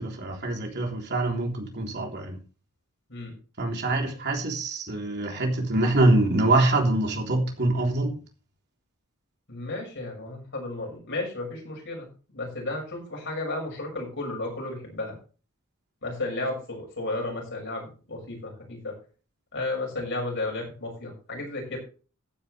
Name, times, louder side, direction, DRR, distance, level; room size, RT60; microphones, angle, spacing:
voice 1, 0.0-2.4 3.6-8.2, right 2 dB, 50° right, 3.6 m, -24 dB
voice 2, 9.5-15.1 16.0-18.9 19.5-21.8, left 2 dB, 55° left, 6.4 m, -33 dB
14.5 x 10.0 x 3.4 m
head